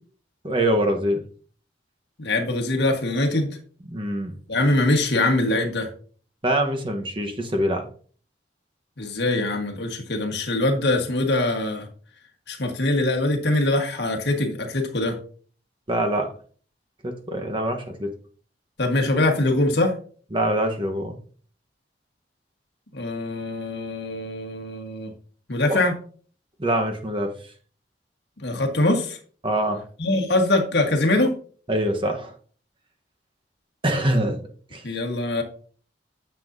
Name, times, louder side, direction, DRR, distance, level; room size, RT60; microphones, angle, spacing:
voice 1, 0.4-1.2 3.9-4.3 6.4-7.9 15.9-16.3 17.0-18.1 20.3-21.2 25.7-25.8 26.6-27.3 29.4-29.8 31.7-32.3 33.8-34.8, right 1 dB, 30° right, 4 dB, 1.0 m, -24 dB
voice 2, 2.2-3.6 4.5-5.9 9.0-11.9 12.5-15.2 18.8-19.9 22.9-25.1 25.5-25.9 28.4-29.2 30.0-31.3 34.8-35.4, left 2 dB, 65° left, 3 dB, 1.5 m, -23 dB
9.5 x 6.9 x 2.7 m, 0.43 s
head